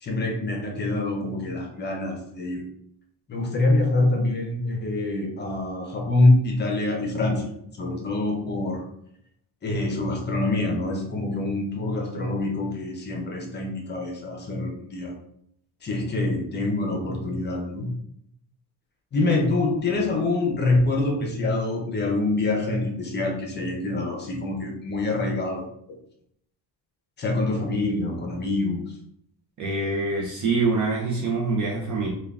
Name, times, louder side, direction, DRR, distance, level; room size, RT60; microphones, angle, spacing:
voice 1, 0.0-2.6 3.3-7.5 7.8-8.8 9.6-15.1 15.8-17.9 19.1-25.7 27.2-28.8, left 2 dB, 25° left, 1 dB, 0.6 m, -25 dB
voice 2, 29.6-32.1, right 3 dB, 45° right, -2 dB, 0.7 m, -25 dB
3.6 x 2.4 x 3.4 m, 0.71 s
cardioid pair, 170°, 41 cm